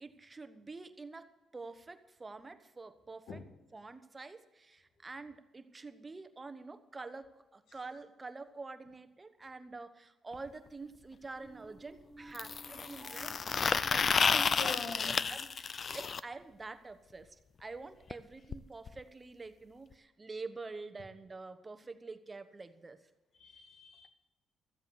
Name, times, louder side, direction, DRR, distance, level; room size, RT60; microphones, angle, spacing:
voice 1, 0.0-3.4 3.7-23.0, right 3 dB, 25° right, 10 dB, 1.1 m, -47 dB
sound 1, 10.3-10.4 12.3-16.2 18.1-18.2 18.5-18.6 18.9-19.0 19.9-20.0, left 6 dB, 45° left, 0.5 m, -31 dB
sound 2, 11.3-16.4, right 2 dB, ahead, 2.0 m, -55 dB
voice 2, 14.6-15.1 23.4-24.1, left 5 dB, 65° left, 6 dB, 1.8 m, -43 dB
14.0 x 8.0 x 8.0 m, 1.1 s
cardioid pair, 90°, 0 cm